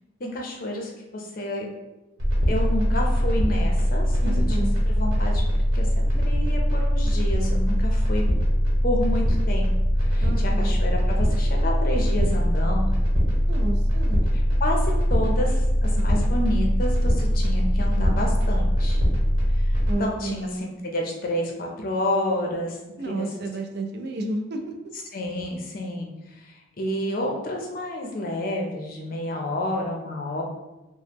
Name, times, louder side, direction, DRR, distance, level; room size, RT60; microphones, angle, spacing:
voice 1, 0.2-1.7 2.5-4.6 4.9-5.4 5.7-8.2 8.8-9.7 10.0-13.0 14.6-19.0 19.5-22.8 23.0-23.3 25.1-26.1 26.4-30.4, left 1 dB, 45° left, 0 dB, 0.5 m, -30 dB
sound 1, 2.2-20.0, equal, 75° right, 1.1 m, -21 dB
voice 2, 4.2-4.8 10.2-10.8 13.5-14.2 19.9-20.7 23.0-24.6, right 2 dB, 55° right, 4 dB, 0.4 m, -31 dB
2.9 x 2.0 x 3.4 m, 1.0 s
head